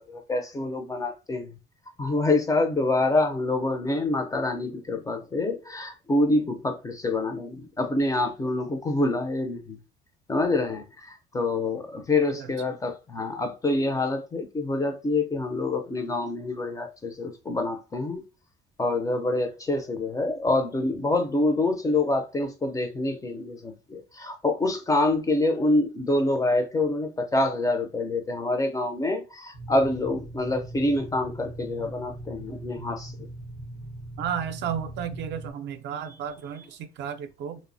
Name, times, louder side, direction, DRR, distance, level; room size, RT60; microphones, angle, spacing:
voice 1, 0.0-1.6 2.0-9.8 10.3-18.2 18.8-33.3, left 2 dB, 15° left, 0.4 m, -26 dB
sound 1, 29.5-35.5, right 1 dB, 85° left, 0.8 m, -40 dB
voice 2, 34.2-37.6, right 8 dB, 60° right, 0.4 m, -33 dB
2.8 x 2.0 x 2.5 m
cardioid pair, 135°, 20 cm